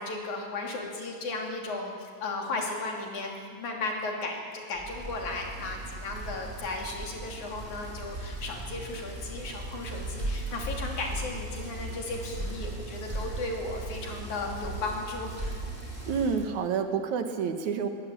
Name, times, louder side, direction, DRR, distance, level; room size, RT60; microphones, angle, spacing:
voice 1, 0.0-15.4, left 3 dB, 85° left, 1 dB, 4.4 m, -35 dB
Bicycle, 4.7-16.4, right 2 dB, 20° right, 7.5 m, -37 dB
voice 2, 16.1-17.9, right 6 dB, 80° right, 6 dB, 2.9 m, -28 dB
22.0 x 17.0 x 8.8 m, 2.1 s
omnidirectional pair, 3.3 m